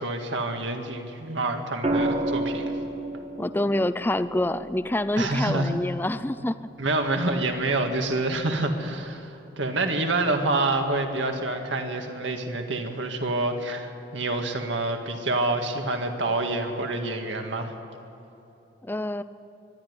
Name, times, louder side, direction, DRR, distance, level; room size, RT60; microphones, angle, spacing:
voice 1, 0.0-2.6 5.2-5.7 6.8-9.3 9.6-17.7, right 2 dB, 80° right, 4 dB, 1.9 m, -27 dB
sound 1, 1.8-6.0 7.7-8.0, right 1 dB, 30° right, 1.0 m, -31 dB
voice 2, 3.4-6.6 18.8-19.2, left 1 dB, 10° left, 13 dB, 0.4 m, -26 dB
23.5 x 11.5 x 9.7 m, 2.9 s
head